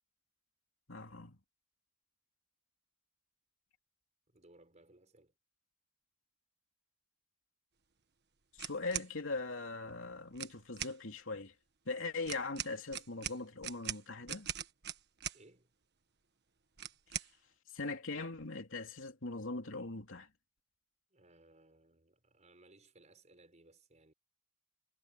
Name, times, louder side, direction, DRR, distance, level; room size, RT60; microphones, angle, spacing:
voice 1, 0.9-1.4 8.5-11.5 11.8-14.5 17.7-20.3, left 3 dB, 65° left, 3.2 m, -40 dB
voice 2, 4.3-5.3 15.3-15.7 21.1-24.1, right 2 dB, 35° right, 6.1 m, -63 dB
sound 1, 8.6-9.1 10.3-11.0 12.3-15.4 16.8-17.3, right 10 dB, 55° right, 1.5 m, -41 dB
head